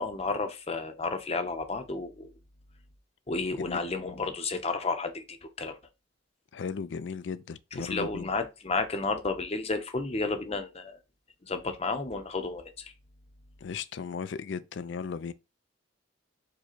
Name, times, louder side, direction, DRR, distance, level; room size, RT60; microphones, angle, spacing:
voice 1, 0.0-2.3 3.3-5.8 7.8-11.0 11.4-12.9, left 3 dB, 35° left, 0.7 m, -32 dB
voice 2, 6.5-8.3 13.6-15.3, left 5 dB, 70° left, 0.4 m, -36 dB
4.8 x 2.2 x 4.4 m
head